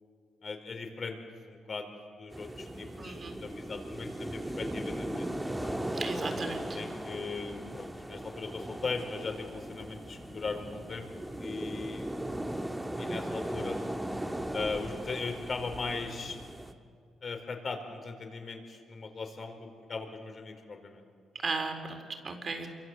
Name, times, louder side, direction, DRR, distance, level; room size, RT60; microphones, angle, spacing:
voice 1, 0.4-1.2 1.5-1.9 2.2-5.3 5.6-5.8 6.7-11.1 11.4-12.1 13.0-13.8 14.5-16.4 17.2-21.0, left 4 dB, 40° left, 5 dB, 4.6 m, -38 dB
sound 1, 2.3-16.7, right 1 dB, 10° right, 1.7 m, -38 dB
voice 2, 3.0-3.3 5.9-6.8 21.3-22.7, right 4 dB, 40° right, 6 dB, 4.2 m, -36 dB
27.5 x 24.0 x 7.9 m, 2.2 s
cardioid pair, 90°, 0 cm